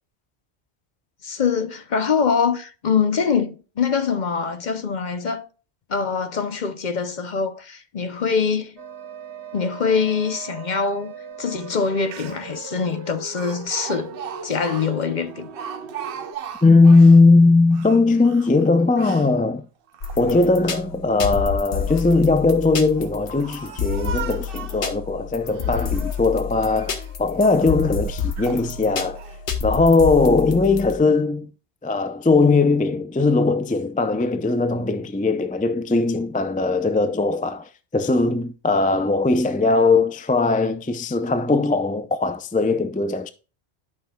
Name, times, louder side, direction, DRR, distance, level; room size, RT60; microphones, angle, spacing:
voice 1, 1.2-5.5 5.9-8.8 9.5-11.1 11.4-14.1 14.4-15.5, left 5 dB, 45° left, 0.8 m, -24 dB
sound 1, 8.8-16.4, right 6 dB, 80° right, 1.2 m, -39 dB
Speech, 11.8-11.9 12.1-12.6 13.4-17.2 17.7-19.3 19.9-20.7 21.6-22.2 22.9-24.9 25.4-26.3 26.6-27.2 27.7-27.8 28.4-28.7 29.2-29.4, right 8 dB, 60° right, 0.8 m, -38 dB
voice 2, 16.6-19.7 20.2-29.2 29.6-31.5 31.8-43.3, left 3 dB, 15° left, 0.3 m, -19 dB
sound 2, 20.0-31.0, left 6 dB, 85° left, 1.4 m, -29 dB
11.5 x 6.0 x 2.3 m
omnidirectional pair, 1.1 m